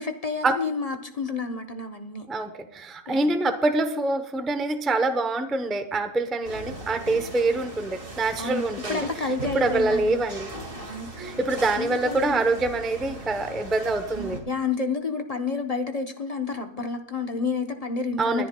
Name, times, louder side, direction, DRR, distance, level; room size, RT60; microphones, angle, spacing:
voice 1, 0.0-2.3 3.1-3.3 8.4-8.6 8.9-10.1 10.7-11.2 11.8-12.4 14.5-18.5, left 4 dB, 35° left, 5 dB, 0.7 m, -30 dB
voice 2, 2.3-10.5 11.2-14.4 18.2-18.5, right 2 dB, ahead, 7 dB, 0.3 m, -25 dB
sound 1, 6.4-14.4, right 2 dB, 35° right, 2.2 m, -38 dB
29.0 x 10.5 x 2.2 m, 0.74 s
omnidirectional pair, 1.6 m